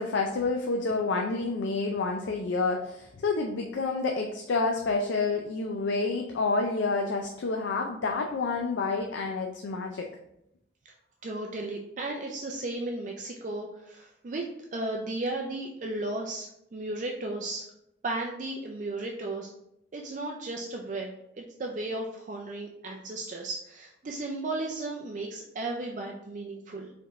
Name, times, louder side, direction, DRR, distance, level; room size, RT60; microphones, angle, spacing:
voice 1, 0.0-10.1, left 3 dB, 90° left, 2 dB, 0.4 m, -29 dB
voice 2, 11.2-17.7 18.0-19.5 19.9-26.9, right 2 dB, 45° right, 1 dB, 0.4 m, -35 dB
4.6 x 3.5 x 3.1 m, 0.80 s
head